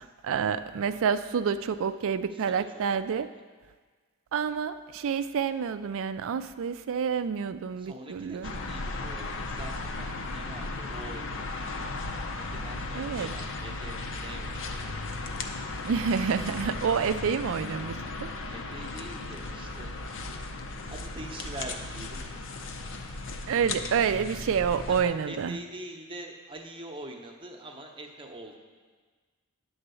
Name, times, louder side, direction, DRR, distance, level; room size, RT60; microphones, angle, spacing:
voice 1, 0.2-3.3 4.3-8.5 12.9-13.3 15.8-18.3 23.5-25.6, right 6 dB, 60° right, 12 dB, 0.4 m, -28 dB
voice 2, 2.3-2.6 3.1-3.4 7.8-11.9 12.4-14.9 18.5-19.9 20.9-22.4 24.9-28.6, right 1 dB, 25° right, 2 dB, 0.8 m, -44 dB
sound 1, 8.4-25.0, left 3 dB, 60° left, 0.7 m, -36 dB
9.9 x 3.9 x 6.8 m, 1.5 s
head